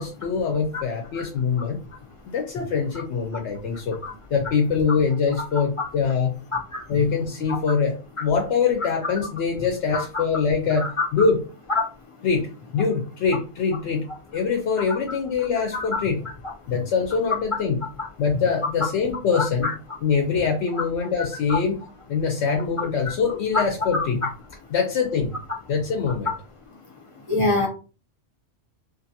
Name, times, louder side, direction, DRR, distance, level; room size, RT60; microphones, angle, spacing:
voice 1, 0.0-1.8 2.3-4.0 4.3-6.4 6.9-11.4 12.2-16.2 16.7-17.8 18.2-19.7 20.0-21.8 22.1-24.2 24.7-25.4 25.7-26.3, left 5 dB, 70° left, 2 dB, 0.8 m, -24 dB
voice 2, 19.3-19.7 21.5-21.6 23.9-24.0 27.3-27.7, left 2 dB, 40° left, -2 dB, 0.5 m, -24 dB
2.6 x 2.5 x 2.6 m, 0.34 s
omnidirectional pair, 1.3 m